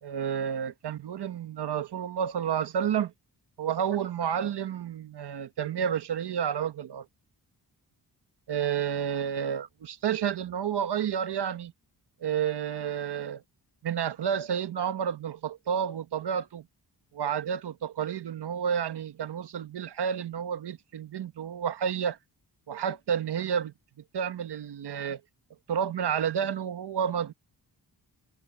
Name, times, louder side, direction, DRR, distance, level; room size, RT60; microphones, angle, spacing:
voice 1, 0.0-3.1 3.6-7.1 8.5-11.7 12.2-13.4 13.8-16.6 17.1-22.2 22.7-23.7 24.1-25.2 25.7-27.3, right 8 dB, 90° right, 1.3 m, -30 dB
wide cardioid pair, 135°, 40 cm